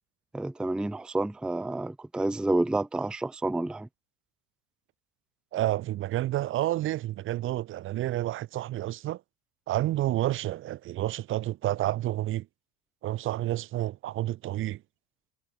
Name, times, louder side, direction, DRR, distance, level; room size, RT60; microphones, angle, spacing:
voice 1, 0.3-3.9, right 2 dB, ahead, 0.6 m, -29 dB
voice 2, 5.5-9.2 9.7-12.5 13.0-14.8, right 14 dB, 35° right, 0.7 m, -29 dB
supercardioid pair, 130°, 34 cm